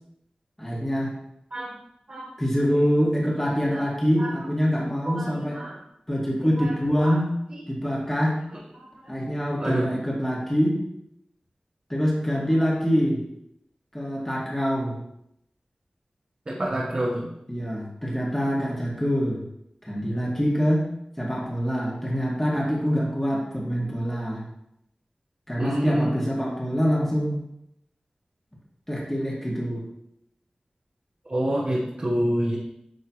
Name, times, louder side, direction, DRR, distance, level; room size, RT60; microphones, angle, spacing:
voice 1, 0.6-1.1 2.4-5.6 6.1-7.4 7.7-8.4 9.1-10.8 11.9-13.2 13.9-15.0 17.5-19.4 19.8-20.9 21.2-24.4 25.5-27.4 28.9-29.8, equal, 10° left, -5 dB, 1.9 m, -25 dB
voice 2, 4.8-5.8 6.6-6.7 7.0-7.2 9.6-9.9 16.5-17.3 25.6-26.2 31.3-32.6, right 1 dB, 45° right, -5 dB, 1.2 m, -27 dB
9.2 x 3.6 x 3.1 m, 0.78 s
wide cardioid pair, 45°, 3 cm